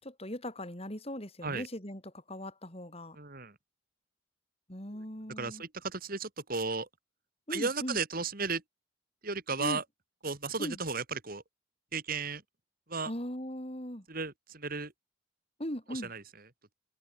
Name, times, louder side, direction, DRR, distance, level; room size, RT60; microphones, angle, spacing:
voice 1, 0.0-3.2 4.7-5.6 7.5-8.0 9.6-9.8 10.6-10.8 13.0-14.0 15.6-16.1, equal, 30° left, 6.2 m, -39 dB
voice 2, 3.2-3.5 5.4-6.9 7.5-8.6 9.2-9.8 10.2-11.4 11.9-12.4 12.9-13.1 14.1-14.9 15.9-16.2, right 4 dB, 45° right, 2.6 m, -34 dB
head